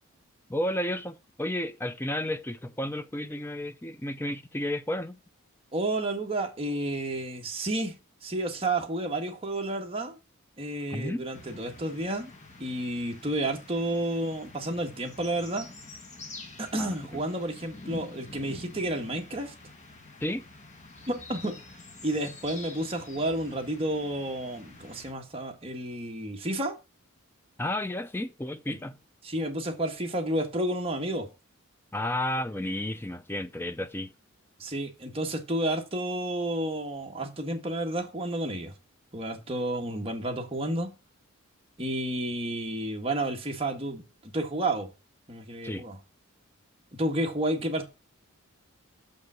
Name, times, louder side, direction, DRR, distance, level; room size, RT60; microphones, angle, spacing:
voice 1, 0.5-5.2 10.9-11.2 16.7-17.2 20.2-20.4 27.6-29.0 31.9-34.1 45.6-45.8, left 1 dB, 10° left, 0.5 m, -32 dB
voice 2, 5.7-7.9 8.2-10.2 10.6-12.3 12.6-15.7 16.6-19.5 21.1-21.6 22.0-26.7 28.7-28.8 29.2-31.3 34.6-38.7 39.1-40.9 41.8-44.0 44.3-44.9 45.3-46.0 47.0-47.9, right 1 dB, 25° right, 1.5 m, -31 dB
sound 1, 11.3-25.1, left 3 dB, 30° left, 1.3 m, -47 dB
6.6 x 5.2 x 6.2 m
head